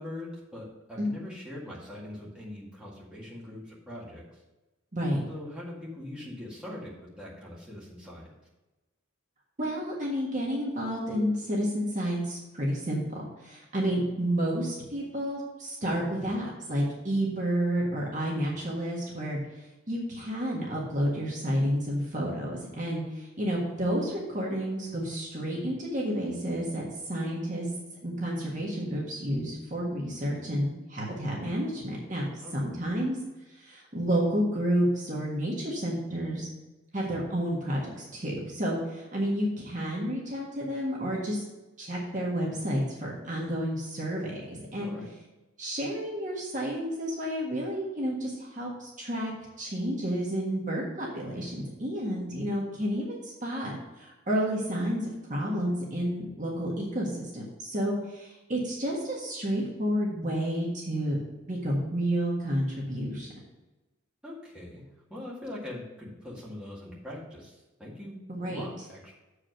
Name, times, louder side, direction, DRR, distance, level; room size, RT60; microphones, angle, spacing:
voice 1, 0.0-4.4 5.3-8.3 32.4-32.7 44.8-45.1 64.2-64.8 65.1-68.2 68.4-69.1, left 1 dB, 5° right, -6 dB, 2.0 m, -42 dB
voice 2, 4.9-5.2 9.6-27.7 28.0-32.3 32.5-33.2 33.5-36.5 36.9-41.4 41.8-44.9 45.6-49.3 49.6-55.0 55.3-61.2 61.5-63.3 68.3-68.6, equal, 35° right, -3 dB, 1.5 m, -30 dB
7.4 x 4.9 x 6.3 m, 1.1 s
head